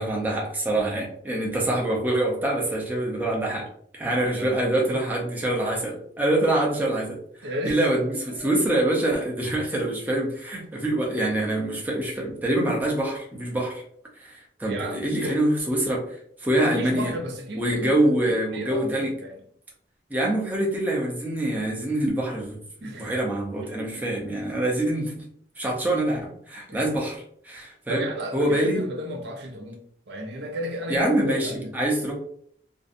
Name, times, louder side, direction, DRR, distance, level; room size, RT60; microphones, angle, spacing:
voice 1, 0.0-3.7 3.9-13.8 14.2-16.0 16.4-17.1 17.5-19.1 20.1-22.6 23.0-25.2 25.6-28.0 28.3-28.8 30.9-32.1, right 1 dB, 10° right, 0.5 m, -25 dB
voice 2, 4.3-4.8 7.4-7.9 8.3-8.5 14.7-15.4 16.5-19.4 22.8-23.1 23.6-24.1 26.7-26.8 27.9-29.8 30.1-31.7, equal, 65° right, 0.5 m, -33 dB
2.6 x 2.1 x 2.5 m
head